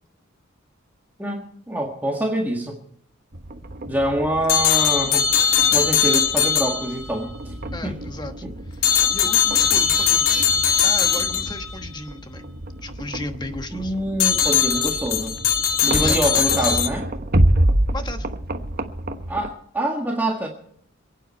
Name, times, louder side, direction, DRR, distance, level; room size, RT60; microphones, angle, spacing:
voice 1, 1.2-2.8 3.9-5.3 5.7-7.5 7.8-8.0 8.4-8.5 13.7-15.4 15.8-17.0 19.3-20.5, right 1 dB, 10° right, -1 dB, 1.7 m, -25 dB
sound 1, 3.3-19.5, right 1 dB, 45° right, 1.2 m, -28 dB
sound 2, 4.5-7.3 8.8-11.8 14.2-16.9, left 7 dB, 75° left, 1.6 m, -20 dB
voice 2, 7.7-10.3 10.7-12.5 12.8-13.9 16.0-16.2 16.6-16.8 17.9-18.3, left 2 dB, 20° left, 7 dB, 1.2 m, -35 dB
27.5 x 9.3 x 4.3 m, 0.68 s
head